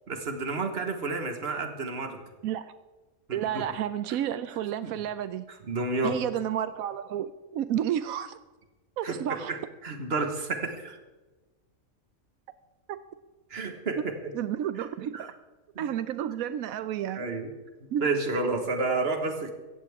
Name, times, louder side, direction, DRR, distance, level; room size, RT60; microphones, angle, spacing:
voice 1, 0.1-2.2 3.3-3.7 4.8-4.9 5.5-6.2 9.0-11.0 13.5-14.2 14.8-14.9 15.1-15.3 15.8-15.9 17.1-17.5 18.0-19.5, right 3 dB, 45° right, 1.7 m, -30 dB
voice 2, 2.4-2.7 3.3-5.5 6.0-8.4 9.0-9.5 12.9-13.0 14.3-15.3 15.8-17.3 17.9-18.1, right 10 dB, 90° right, 1.0 m, -31 dB
17.0 x 14.5 x 3.6 m
omnidirectional pair, 1.5 m